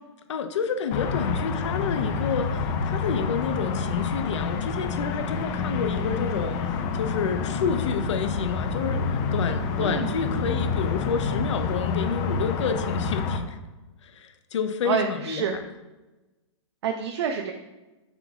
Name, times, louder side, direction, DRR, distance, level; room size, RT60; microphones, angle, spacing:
voice 1, 0.3-13.6 14.0-15.6, left 6 dB, 75° left, 8 dB, 0.8 m, -29 dB
sound 1, 0.9-13.4, left 4 dB, 20° left, 0.4 m, -28 dB
voice 2, 9.8-10.1 14.8-15.5 16.8-17.5, right 7 dB, 60° right, 4 dB, 0.7 m, -27 dB
11.0 x 3.9 x 2.3 m, 1.1 s
hypercardioid pair, 165°, 16 cm